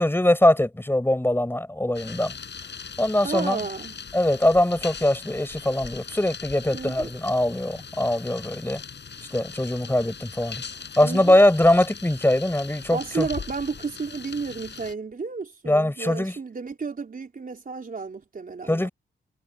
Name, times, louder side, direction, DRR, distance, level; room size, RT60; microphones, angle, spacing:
voice 1, 0.0-2.3 3.0-3.6 4.1-8.8 9.3-10.6 11.0-13.3 15.7-16.4 18.7-18.9, left 1 dB, 10° left, 7.6 m, -22 dB
sound 1, 1.9-14.9, left 6 dB, 60° left, 5.7 m, -40 dB
voice 2, 3.2-3.9 6.7-7.1 11.0-11.4 12.9-18.9, right 4 dB, 45° right, 4.0 m, -32 dB
cardioid pair, 75°, 21 cm